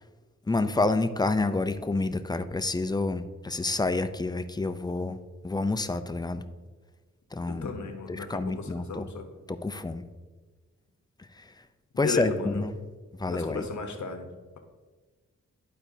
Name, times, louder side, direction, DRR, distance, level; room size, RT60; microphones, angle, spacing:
voice 1, 0.5-5.2 5.4-6.4 7.3-7.7 8.1-9.0 9.5-10.0 11.4-11.5 12.0-12.8 13.2-13.7, left 3 dB, 15° left, 10 dB, 0.5 m, -28 dB
voice 2, 7.5-9.3 11.9-12.6 13.3-14.3, left 4 dB, 65° left, 4 dB, 1.1 m, -34 dB
12.0 x 4.3 x 2.7 m, 1.3 s
cardioid pair, 45°, 31 cm